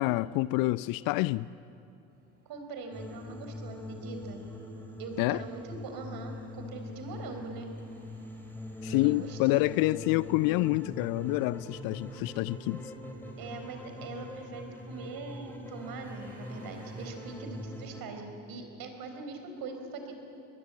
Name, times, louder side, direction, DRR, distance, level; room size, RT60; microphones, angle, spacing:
voice 1, 0.0-1.5 5.2-5.4 8.8-12.8, left 19 dB, 50° left, 0.5 m, -27 dB
sound 1, 2.1-17.2, right 2 dB, 20° right, 8.0 m, -64 dB
voice 2, 2.4-4.4 5.0-7.7 8.9-9.7 13.4-20.2, right 4 dB, 50° right, 4.6 m, -42 dB
sound 2, 2.9-18.0, left 1 dB, 5° left, 3.7 m, -43 dB
22.5 x 20.5 x 8.7 m
figure-of-eight pair, 65°, 45 cm